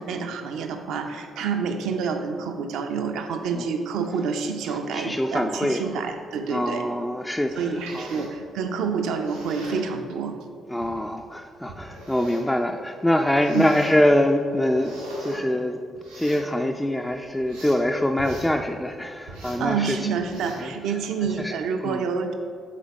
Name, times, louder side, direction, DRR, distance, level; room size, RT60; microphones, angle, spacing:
voice 1, 0.0-6.9 7.6-10.4 13.5-13.7 19.6-22.3, right 5 dB, 60° right, 6 dB, 0.4 m, -28 dB
voice 2, 4.9-5.9 6.5-8.3 10.7-15.8 16.2-20.1 20.6-20.7 21.4-21.5 21.8-22.1, left 1 dB, 10° left, 4 dB, 0.3 m, -24 dB
sound 1, 7.5-8.4 9.1-9.9 10.8-10.9 11.7-12.5 13.2-13.9 14.5-15.4 15.9-16.5 17.0-17.8 18.2-18.5 19.3-19.7 20.2-20.7 21.2-21.5, right 1 dB, 85° right, 1.2 m, -40 dB
7.5 x 3.9 x 3.3 m, 2.3 s
figure-of-eight pair, 40°, 0 cm